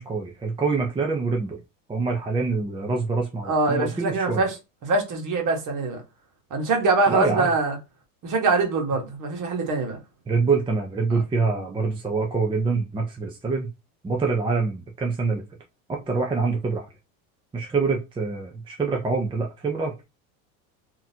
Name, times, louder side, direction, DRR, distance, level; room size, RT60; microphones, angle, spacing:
voice 1, 0.0-1.6 1.9-4.5 7.1-7.5 10.3-13.7 14.0-15.4 15.9-16.9 17.5-20.0, right 4 dB, 10° right, 0.6 m, -25 dB
voice 2, 3.4-4.5 4.8-6.0 6.5-7.8 8.2-10.0 11.1-11.2, right 3 dB, 45° right, 1.5 m, -23 dB
3.7 x 2.9 x 2.8 m
supercardioid pair, 105°, 42 cm